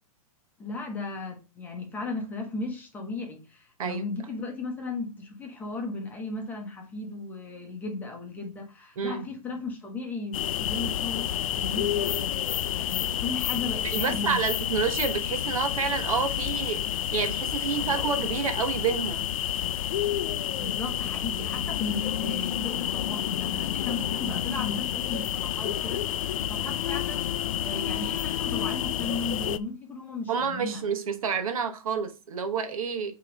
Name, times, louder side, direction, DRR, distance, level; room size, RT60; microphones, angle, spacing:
voice 1, 0.6-12.4 12.7-14.5 20.6-30.8, left 3 dB, 10° left, 0.9 m, -36 dB
sound 1, 10.3-29.6, left 11 dB, 65° left, 0.4 m, -29 dB
voice 2, 13.8-19.3 30.3-33.1, right 6 dB, 70° right, 1.2 m, -29 dB
6.5 x 3.0 x 5.1 m
hypercardioid pair, 160°, 19 cm